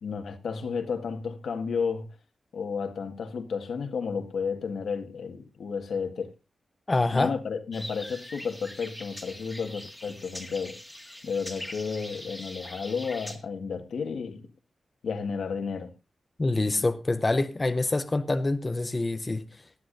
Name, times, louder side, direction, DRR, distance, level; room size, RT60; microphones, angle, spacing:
voice 1, 0.0-2.1 2.5-6.4 7.1-10.8 11.2-14.4 15.0-15.9, left 5 dB, 80° left, 1.7 m, -32 dB
voice 2, 6.9-7.3 16.4-19.5, left 2 dB, 20° left, 0.6 m, -26 dB
sound 1, 7.7-13.4, left 1 dB, 5° left, 1.9 m, -42 dB
18.5 x 12.0 x 2.6 m
wide cardioid pair, 165°, 0 cm